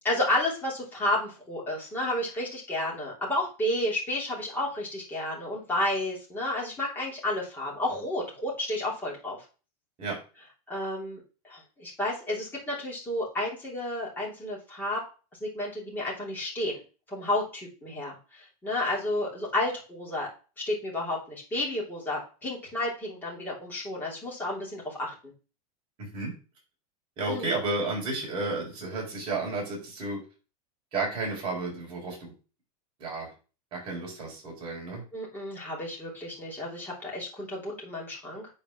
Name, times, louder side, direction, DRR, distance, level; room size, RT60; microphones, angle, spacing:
voice 1, 0.0-9.4 10.7-15.0 15.4-16.7 17.1-20.3 20.6-25.1 27.3-27.6 35.1-38.5, left 1 dB, 10° left, -5 dB, 3.0 m, -31 dB
voice 2, 26.0-26.3 27.2-30.2 30.9-32.3 33.0-33.3 33.7-35.0, right 3 dB, 30° right, -3 dB, 4.4 m, -32 dB
8.8 x 4.5 x 5.7 m, 0.35 s
supercardioid pair, 175°, 19 cm